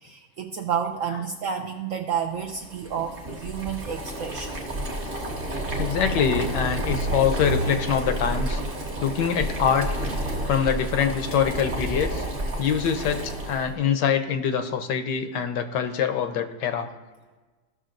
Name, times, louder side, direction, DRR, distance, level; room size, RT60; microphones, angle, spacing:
voice 1, 0.0-4.5, right 7 dB, 70° right, 4 dB, 0.7 m, -30 dB
Boiling, 2.5-13.7, right 1 dB, 35° right, 1.2 m, -30 dB
voice 2, 5.8-8.6 9.0-9.9 10.5-12.2 12.6-13.2 13.5-16.9, left 7 dB, 80° left, 8 dB, 1.3 m, -24 dB
15.0 x 6.3 x 2.5 m, 1.3 s
omnidirectional pair, 1.9 m